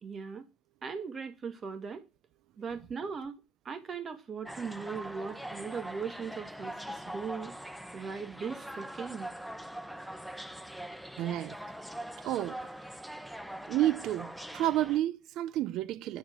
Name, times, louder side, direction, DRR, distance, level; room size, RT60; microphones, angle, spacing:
voice 1, 0.0-0.4 0.8-2.0 2.6-7.5 7.9-9.3, right 5 dB, 45° right, 2.3 m, -39 dB
sound 1, 4.4-15.0, right 1 dB, 5° right, 1.3 m, -42 dB
voice 2, 11.2-11.6 12.2-12.6 13.7-16.2, right 13 dB, 70° right, 0.5 m, -30 dB
10.5 x 4.7 x 7.8 m
hypercardioid pair, 70°, 0 cm